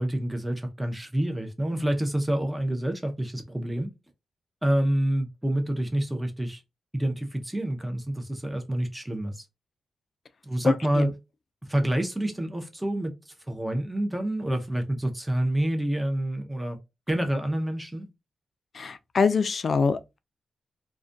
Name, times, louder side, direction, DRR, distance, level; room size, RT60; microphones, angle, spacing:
voice 1, 0.0-3.9 4.6-6.6 6.9-9.4 10.4-11.1 11.7-13.1 13.5-16.8 17.1-18.1, right 1 dB, 10° right, 0.6 m, -27 dB
voice 2, 10.6-11.1 18.8-20.2, left 5 dB, 55° left, 0.3 m, -25 dB
2.3 x 2.1 x 2.5 m
cardioid pair, 90°, 0 cm